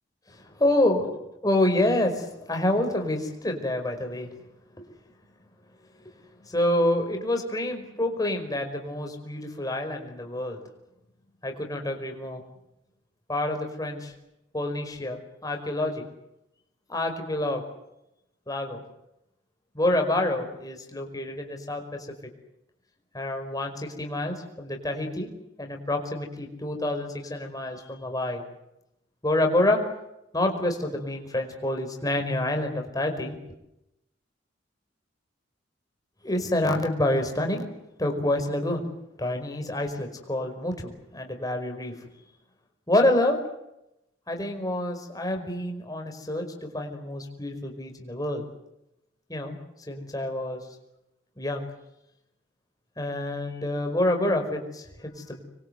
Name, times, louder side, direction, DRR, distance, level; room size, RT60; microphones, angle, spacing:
voice 1, 0.6-1.1 1.4-4.3 6.0-6.1 6.4-10.6 11.4-12.4 13.3-14.1 14.5-16.0 16.9-17.6 18.5-18.8 19.7-22.1 23.1-25.3 25.6-28.4 29.2-29.8 30.3-33.3 36.2-37.7 38.0-38.9 39.2-41.9 42.9-43.4 44.3-48.4 49.3-49.5 49.9-50.6 51.4-51.7 53.0-55.4, left 1 dB, 20° left, 3 dB, 5.0 m, -27 dB
26.5 x 23.0 x 8.1 m, 0.87 s
head